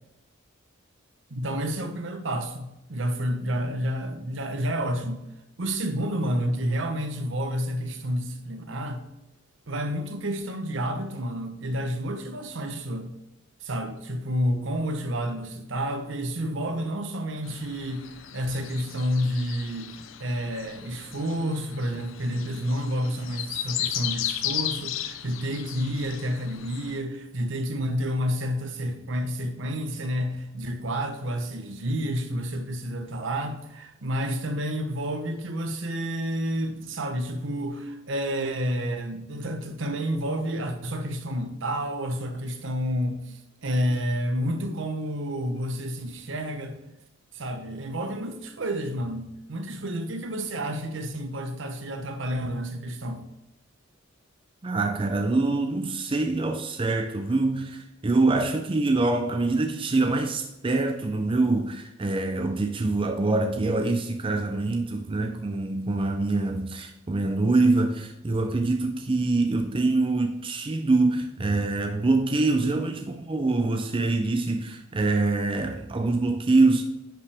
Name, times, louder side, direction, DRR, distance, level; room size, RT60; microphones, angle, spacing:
voice 1, 1.3-5.2 5.6-9.0 9.7-13.1 13.6-19.9 20.2-46.8 47.3-53.2, equal, 65° right, 1.0 m, -30 dB
sound 1, 17.4-27.0, left 11 dB, 75° left, 0.5 m, -35 dB
voice 2, 54.6-76.8, right 2 dB, 25° right, 0.5 m, -25 dB
10.0 x 5.5 x 3.4 m
head